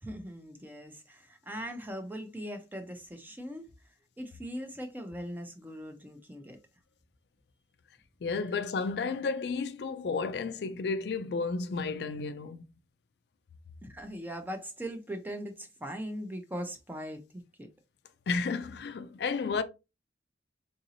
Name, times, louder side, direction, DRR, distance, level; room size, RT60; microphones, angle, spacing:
voice 1, 0.0-6.6 8.5-8.6 13.8-17.7, equal, 10° right, 0.5 m, -40 dB
voice 2, 8.2-12.6 18.3-19.6, left 4 dB, 65° left, 0.4 m, -32 dB
3.9 x 2.6 x 2.8 m
head